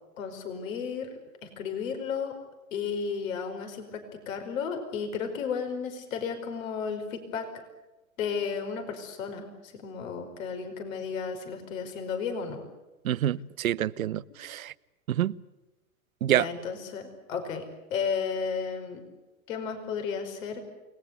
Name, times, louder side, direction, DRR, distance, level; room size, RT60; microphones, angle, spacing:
voice 1, 0.2-1.1 1.4-2.4 2.7-7.5 8.2-12.6 16.3-17.6 17.9-19.0 19.5-20.6, left 6 dB, 70° left, 6 dB, 5.1 m, -33 dB
voice 2, 13.0-14.7 15.1-15.3 16.2-16.5, right 12 dB, 85° right, 19 dB, 0.9 m, -27 dB
28.5 x 20.0 x 8.2 m, 1.1 s
hypercardioid pair, 100°, 41 cm